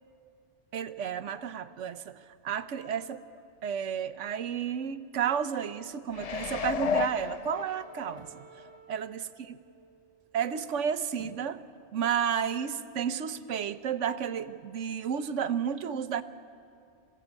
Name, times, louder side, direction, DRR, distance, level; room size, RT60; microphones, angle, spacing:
voice 1, 0.7-3.2 3.6-8.5 8.9-9.6 10.3-11.6 11.9-16.2, right 8 dB, 80° right, 12 dB, 1.1 m, -32 dB
sound 1, 6.1-8.2 8.7-8.8, left 6 dB, 45° left, 0.5 m, -32 dB
Wind instrument woodwind instrument, 6.2-10.6, right 6 dB, 50° right, 1.5 m, -56 dB
sound 2, 8.1-8.5 11.1-11.6 12.1-12.2, right 1 dB, 15° right, 1.6 m, -54 dB
27.5 x 16.0 x 8.2 m, 2.5 s
omnidirectional pair, 1.2 m